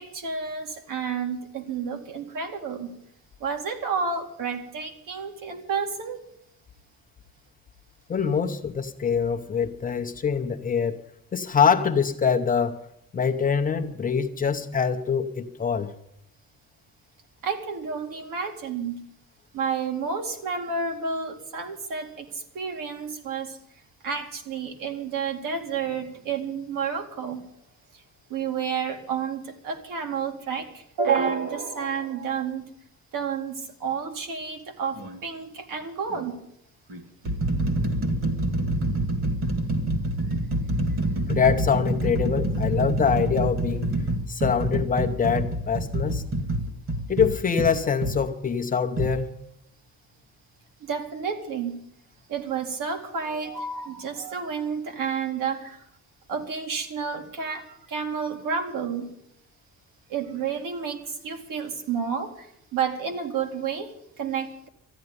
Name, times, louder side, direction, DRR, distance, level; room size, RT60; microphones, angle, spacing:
voice 1, 0.0-2.9 3.4-6.2 17.4-18.9 19.5-23.6 24.0-27.4 27.9-28.0 28.3-32.6 33.1-36.4 50.8-51.8 52.3-55.8 56.3-59.1 60.1-62.5 62.7-64.7, right 6 dB, 65° right, 5 dB, 2.3 m, -30 dB
voice 2, 8.1-11.0 11.3-12.8 13.1-15.9 41.3-43.9 44.3-46.2 47.1-49.3, left 6 dB, 25° left, 4 dB, 0.8 m, -24 dB
sound 1, 35.0-35.2 36.1-36.2 36.9-48.2 49.0-49.1, right 1 dB, 40° right, 2.0 m, -27 dB
13.5 x 10.0 x 9.5 m, 0.74 s
cardioid pair, 165°, 35 cm